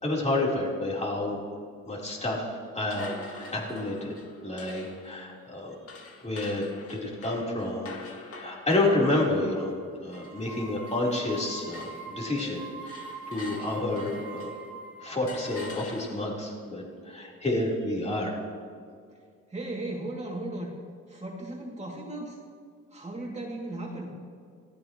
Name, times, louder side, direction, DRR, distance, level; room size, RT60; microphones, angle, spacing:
voice 1, 0.0-1.4 1.9-2.5 2.7-4.1 4.4-5.8 6.2-7.9 8.3-9.7 10.0-14.5 15.0-18.4, left 2 dB, 20° left, -4 dB, 4.2 m, -29 dB
sound 1, 2.8-11.4 11.7-14.7 15.3-16.5, left 3 dB, 50° left, 2.2 m, -46 dB
sound 2, 9.3-9.8 10.1-15.7, right 4 dB, 5° right, 2.3 m, -43 dB
voice 2, 19.5-20.7 21.1-22.4 22.9-24.2, right 2 dB, 20° right, -2 dB, 2.8 m, -36 dB
25.5 x 17.5 x 3.2 m, 2.2 s
cardioid pair, 90°, 30 cm